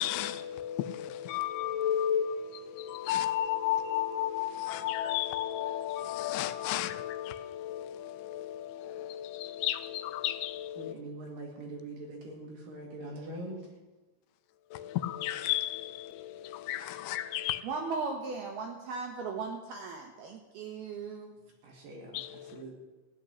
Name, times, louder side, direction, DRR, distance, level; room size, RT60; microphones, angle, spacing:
voice 1, 0.0-11.0 14.7-17.6 22.1-22.6, left 11 dB, 80° left, 2.9 m, -33 dB
voice 2, 10.8-13.6 21.6-22.7, right 2 dB, 55° right, 3.3 m, -43 dB
voice 3, 17.6-21.3, right 4 dB, 70° right, 2.6 m, -37 dB
16.0 x 6.4 x 10.0 m
omnidirectional pair, 5.6 m